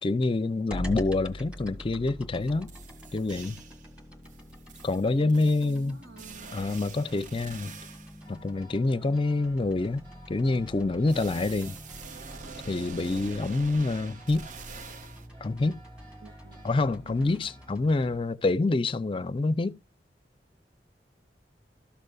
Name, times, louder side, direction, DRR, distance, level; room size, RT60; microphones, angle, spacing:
voice 1, 0.0-2.7 3.1-3.6 4.8-6.0 6.5-7.7 8.3-11.8 12.7-14.5 15.4-15.8 16.6-19.8, left 3 dB, 30° left, 0.4 m, -27 dB
sound 1, 0.7-18.2, equal, 5° right, 1.4 m, -45 dB
sound 2, 2.4-2.5 2.7-3.9 4.2-8.3 11.1-15.3, right 5 dB, 45° right, 0.6 m, -45 dB
voice 2, 5.2-6.6 16.2-16.8 17.0-17.5, right 4 dB, 90° right, 1.4 m, -49 dB
sound 3, 8.2-17.7, right 1 dB, 30° right, 3.0 m, -55 dB
13.0 x 6.6 x 2.3 m
head